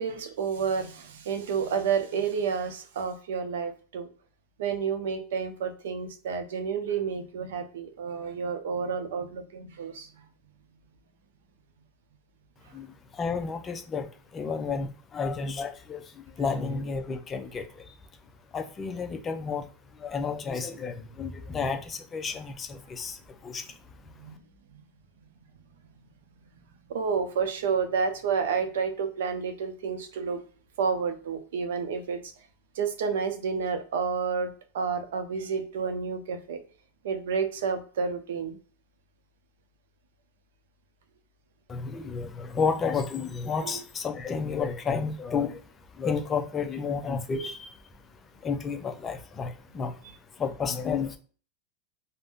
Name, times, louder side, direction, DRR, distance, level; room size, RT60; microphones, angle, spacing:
voice 1, 0.0-4.1 4.6-10.1 24.2-24.3 24.7-24.8 26.9-30.4 30.8-32.2 32.8-36.6 37.0-38.6 43.6-43.8 50.0-50.1, right 6 dB, 85° right, 0.6 m, -30 dB
voice 2, 12.7-17.9 18.5-19.7 19.9-23.7 41.7-45.6 45.9-47.8 48.4-50.0 50.4-51.2, left 5 dB, 20° left, 0.4 m, -31 dB
2.5 x 2.1 x 3.5 m
supercardioid pair, 140°, 0 cm